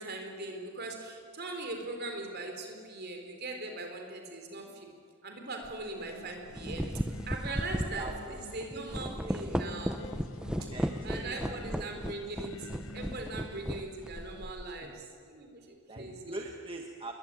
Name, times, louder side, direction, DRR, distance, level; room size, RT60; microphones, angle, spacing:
voice 1, 0.0-4.9 5.2-10.0 10.6-10.7 11.0-16.4, right 2 dB, 45° right, 3 dB, 4.3 m, -40 dB
sound 1, 5.6-5.8 6.4-14.8, equal, 5° right, 0.8 m, -36 dB
Singing, 6.0-14.5, left 2 dB, 60° left, 0.9 m, -50 dB
voice 2, 8.0-8.5 9.1-9.5 10.5-12.0 13.5-13.6 15.9-17.1, right 2 dB, 25° right, 2 dB, 1.5 m, -43 dB
28.0 x 22.5 x 9.2 m, 2.2 s
head